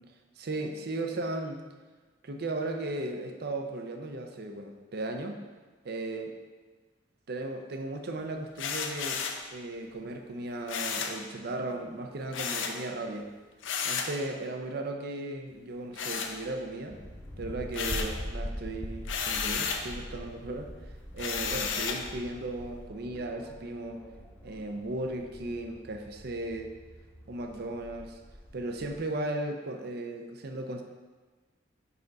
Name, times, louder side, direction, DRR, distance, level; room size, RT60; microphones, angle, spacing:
voice 1, 0.4-1.6 2.2-5.4 5.8-6.3 7.3-9.2 9.5-13.3 13.8-17.0 17.4-20.7 21.1-24.0 24.4-26.7 27.3-28.2 28.5-30.8, right 2 dB, 55° right, 4 dB, 0.6 m, -36 dB
sound 1, 8.6-9.4 10.7-11.2 12.3-12.8 13.6-14.2 15.9-16.8 17.2-18.2 19.0-19.9 21.2-22.1, left 6 dB, 90° left, 0.6 m, -33 dB
sound 2, 16.9-29.0, equal, 10° left, 0.7 m, -43 dB
5.6 x 5.2 x 4.0 m, 1.3 s
head